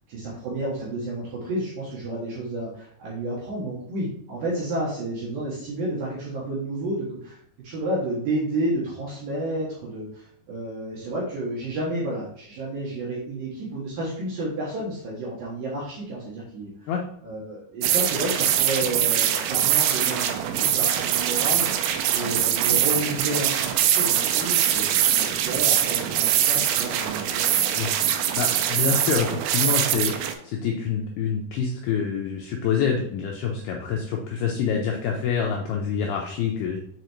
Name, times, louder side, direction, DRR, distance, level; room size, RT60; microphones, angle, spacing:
voice 1, 0.1-7.4 7.6-16.9 17.2-21.9 22.1-27.6, right 1 dB, 65° right, -6 dB, 2.6 m, -31 dB
sound 1, 17.8-30.3, right 10 dB, 85° right, 3.0 m, -23 dB
voice 2, 28.4-36.8, left 7 dB, 85° left, 1 dB, 2.2 m, -26 dB
6.6 x 4.9 x 3.0 m, 0.69 s
omnidirectional pair, 5.2 m